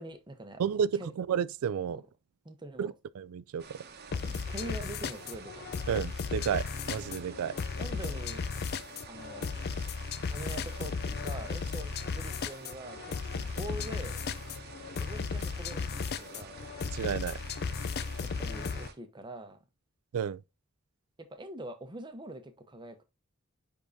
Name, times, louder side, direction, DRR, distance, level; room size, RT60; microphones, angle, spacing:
voice 1, 0.0-0.6 0.9-1.1 1.9-2.0 2.4-2.9 4.1-5.7 7.8-8.5 9.1-9.5 10.3-14.2 14.9-16.6 18.2-19.6 21.2-23.0, right 1 dB, 20° right, 0.9 m, -44 dB
voice 2, 0.6-2.0 2.8-3.6 5.9-7.5 16.9-17.4 20.1-20.4, right 7 dB, 85° right, 0.4 m, -31 dB
sound 1, 3.6-18.9, right 5 dB, 50° right, 1.0 m, -49 dB
sound 2, 4.1-18.9, left 5 dB, 50° left, 0.4 m, -35 dB
10.0 x 3.7 x 2.7 m
head